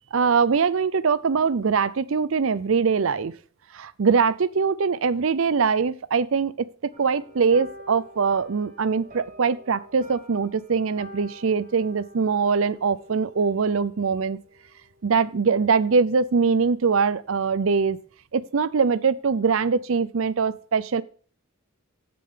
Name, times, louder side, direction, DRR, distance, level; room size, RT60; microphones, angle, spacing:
voice 1, 0.1-3.3 3.7-6.7 7.0-14.4 15.0-18.0 18.3-21.0, right 5 dB, 65° right, 17 dB, 0.5 m, -22 dB
sound 1, 6.9-16.5 16.8-17.1 17.5-17.6, right 1 dB, 40° right, 1.7 m, -47 dB
14.5 x 5.2 x 3.7 m, 0.42 s
head